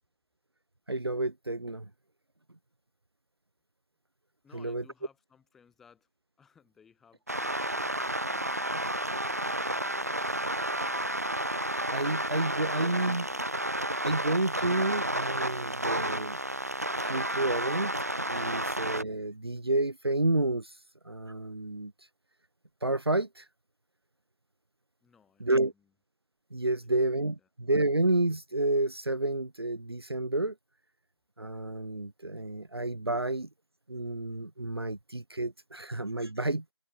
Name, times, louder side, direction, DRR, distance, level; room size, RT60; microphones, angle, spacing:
voice 1, 0.9-1.9 4.5-4.8 11.9-13.3 14.0-16.4 17.0-20.8 21.0-21.9 22.8-23.5 25.4-25.7 26.5-30.5 31.4-33.5 33.9-36.7, right 2 dB, 55° right, 1.4 m, -30 dB
voice 2, 4.4-6.1 6.4-10.4 25.0-25.9 26.7-26.9 27.4-27.5, left 6 dB, ahead, 5.8 m, -61 dB
sound 1, 7.3-19.0, right 1 dB, 30° right, 0.6 m, -31 dB
figure-of-eight pair, 170°, 16 cm